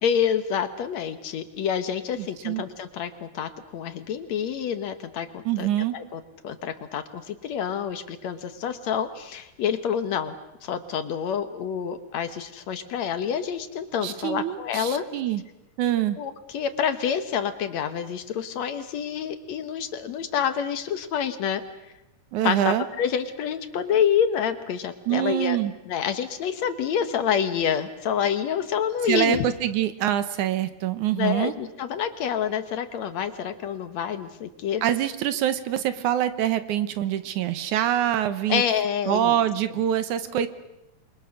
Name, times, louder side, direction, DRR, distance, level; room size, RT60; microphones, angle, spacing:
voice 1, 0.0-5.7 5.9-10.4 10.6-15.0 16.2-21.9 22.4-25.6 25.9-29.5 31.2-34.8 38.5-39.4, left 8 dB, 65° left, 10 dB, 2.3 m, -27 dB
voice 2, 2.2-2.6 5.5-5.9 14.0-15.4 15.8-16.2 22.3-22.9 25.1-25.7 29.1-31.5 34.8-38.6 39.1-40.5, right 11 dB, 75° right, 12 dB, 2.4 m, -25 dB
28.5 x 23.0 x 6.4 m, 0.90 s
omnidirectional pair, 3.7 m